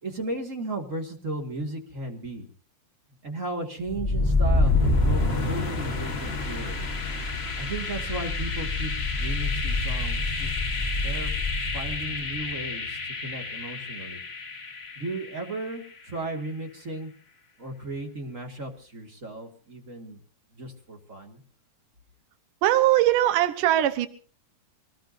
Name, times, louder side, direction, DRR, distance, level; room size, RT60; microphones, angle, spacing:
voice 1, 0.0-2.5 3.2-6.9 7.6-8.9 9.2-10.5 11.0-11.3 11.7-14.2 15.0-17.1 17.6-20.2 20.6-21.4, right 2 dB, 30° right, 3 dB, 2.0 m, -35 dB
sound 1, 3.9-15.7, left 2 dB, 65° left, 0.6 m, -27 dB
voice 2, 22.6-24.1, right 13 dB, 80° right, 11 dB, 2.6 m, -21 dB
25.5 x 18.5 x 2.7 m, 0.41 s
omnidirectional pair, 3.7 m